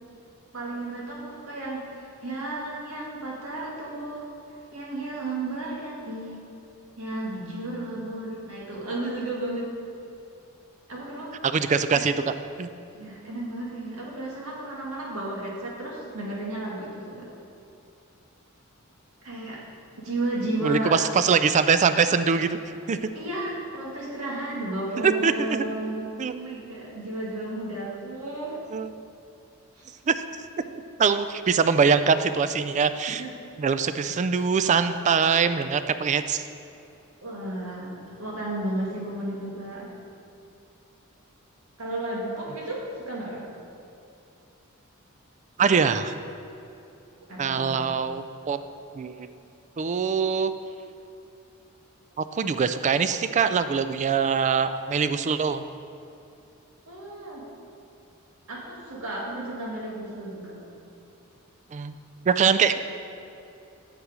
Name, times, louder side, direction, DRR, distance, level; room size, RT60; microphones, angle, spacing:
voice 1, 0.5-4.3 4.7-6.4 7.0-9.7 10.9-11.3 12.9-17.3 19.2-19.6 20.0-21.0 23.1-28.6 29.8-29.9 33.1-33.3 37.2-39.9 41.8-43.4 47.2-47.9 56.9-57.4 58.5-60.6, right 2 dB, 80° right, -4 dB, 2.0 m, -33 dB
voice 2, 11.4-12.1 12.6-12.7 20.6-22.6 22.9-23.0 25.0-25.6 26.2-26.3 28.7-28.9 30.1-30.2 31.0-33.2 33.6-36.4 45.6-46.1 47.4-48.6 49.0-49.3 49.8-50.5 52.2-55.6 61.7-61.9 62.3-62.7, right 6 dB, 35° right, 11 dB, 0.3 m, -23 dB
7.8 x 6.7 x 4.9 m, 2.7 s
head